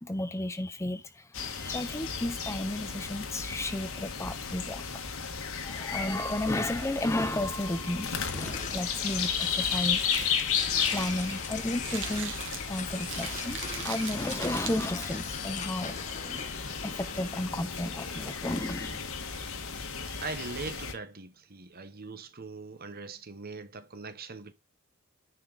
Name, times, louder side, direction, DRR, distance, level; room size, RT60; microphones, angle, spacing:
voice 1, 0.0-4.8 5.6-10.3 10.9-12.3 12.7-13.6 13.8-16.5 16.8-19.1, left 1 dB, 15° left, 0.5 m, -33 dB
sound 1, 1.3-20.9, left 6 dB, 70° left, 1.5 m, -34 dB
sound 2, 8.3-17.5, left 6 dB, 35° left, 1.1 m, -42 dB
Crumpling crinkling, 8.6-15.3, right 7 dB, 60° right, 1.9 m, -41 dB
voice 2, 20.0-24.5, right 4 dB, 40° right, 1.1 m, -41 dB
10.0 x 5.7 x 4.0 m
head